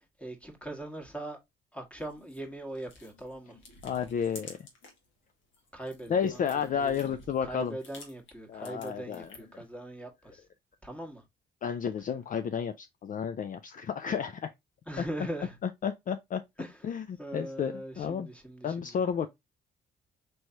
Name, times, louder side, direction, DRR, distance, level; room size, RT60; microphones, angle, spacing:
voice 1, 0.0-1.4 1.7-3.6 5.7-6.4 6.7-10.4 10.8-11.2 14.9-15.6 16.6-16.8 17.2-19.0, right 1 dB, 5° left, 1.4 m, -41 dB
sound 1, 2.0-5.1 5.4-9.6, left 3 dB, 75° left, 1.5 m, -52 dB
voice 2, 3.8-4.6 6.1-7.8 8.5-9.3 11.6-14.5 15.0-15.3 15.6-16.4 16.8-18.3 18.6-19.3, left 7 dB, 45° left, 0.4 m, -32 dB
4.6 x 3.1 x 2.6 m
cardioid pair, 90°, 20 cm